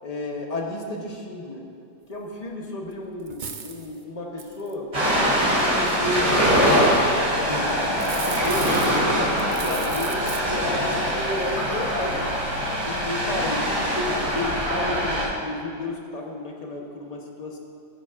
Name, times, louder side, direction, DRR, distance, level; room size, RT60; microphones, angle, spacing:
voice 1, 0.0-1.6 2.1-4.9 5.4-6.8 7.3-12.2 12.8-17.6, left 2 dB, 30° left, 0 dB, 0.8 m, -32 dB
sound 1, 2.9-3.0 3.3-3.9 4.4-4.7 5.4-6.0 7.8-9.1 9.4-10.4, right 6 dB, 70° right, 0.4 m, -36 dB
Ocean, 4.9-15.2, equal, 30° right, 2.8 m, -23 dB
14.5 x 9.9 x 2.5 m, 2.4 s
omnidirectional pair, 1.7 m